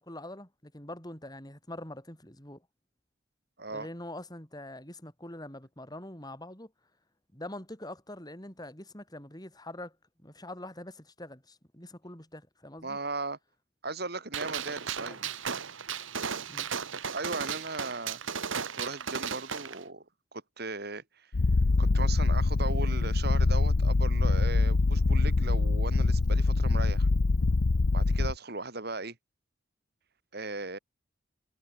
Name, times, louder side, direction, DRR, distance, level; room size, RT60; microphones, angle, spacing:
voice 1, 0.0-2.7 3.7-6.7 7.3-13.0 14.9-15.3 16.5-16.7, left 1 dB, 20° left, 5.6 m, -44 dB
voice 2, 12.8-13.4 13.8-15.2 17.1-18.2 18.7-20.0 20.3-21.3 21.8-27.1 27.9-29.2 30.3-30.8, right 3 dB, 50° right, 3.4 m, -37 dB
Gunshot gunfire, 14.3-19.8, right 6 dB, 75° right, 1.8 m, -35 dB
Purr, 21.3-28.3, left 3 dB, 75° left, 0.7 m, -24 dB
head